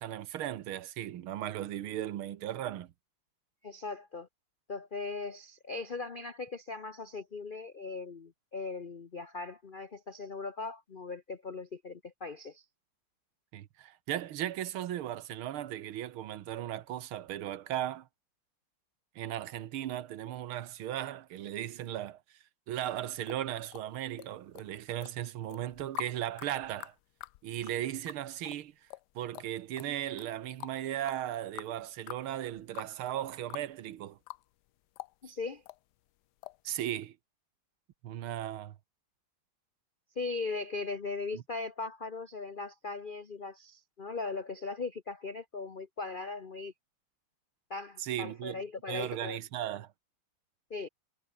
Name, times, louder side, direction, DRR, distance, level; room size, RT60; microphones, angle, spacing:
voice 1, 0.0-2.9 13.5-18.1 19.2-22.2 22.7-26.9 27.4-28.7 29.2-34.2 36.7-37.2 38.0-38.8 41.3-41.4 48.0-48.6 48.9-49.9, right 12 dB, 85° right, 1.9 m, -37 dB
voice 2, 3.6-4.3 4.7-12.6 35.2-35.6 40.2-46.7 47.7-49.4 50.7-50.9, left 4 dB, 60° left, 0.5 m, -39 dB
sound 1, 22.8-24.3 24.5-25.1 25.5-33.7 34.0-34.7 35.0-35.8 36.4-36.6 37.0-37.1, left 16 dB, 80° left, 0.9 m, -45 dB
omnidirectional pair, 2.3 m